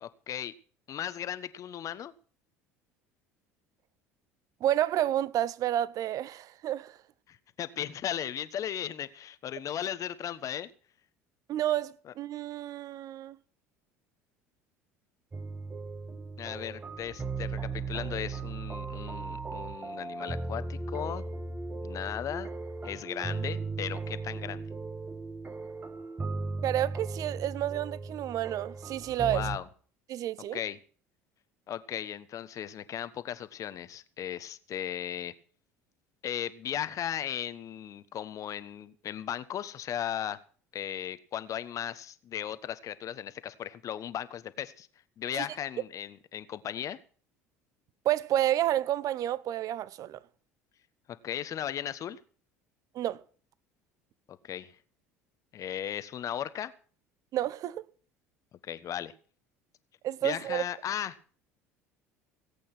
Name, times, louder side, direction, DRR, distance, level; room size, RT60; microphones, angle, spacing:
voice 1, 0.0-0.5 0.9-2.1 7.3-10.7 12.1-12.2 16.4-21.2 21.8-22.5 22.8-24.6 29.3-29.7 30.5-30.8 31.7-35.3 36.2-40.4 40.7-44.9 45.2-47.0 51.2-52.2 54.3-54.7 55.5-56.7 58.6-59.1 60.2-61.3, left 10 dB, 45° left, 1.2 m, -36 dB
voice 2, 4.6-7.0 11.5-13.4 26.6-29.4 30.1-30.6 45.3-45.5 48.0-50.2 52.9-53.2 57.3-57.8 60.0-60.6, right 12 dB, 50° right, 0.8 m, -30 dB
sound 1, 15.3-29.6, right 4 dB, 25° right, 1.6 m, -37 dB
18.5 x 8.5 x 6.1 m
hypercardioid pair, 65°, 8 cm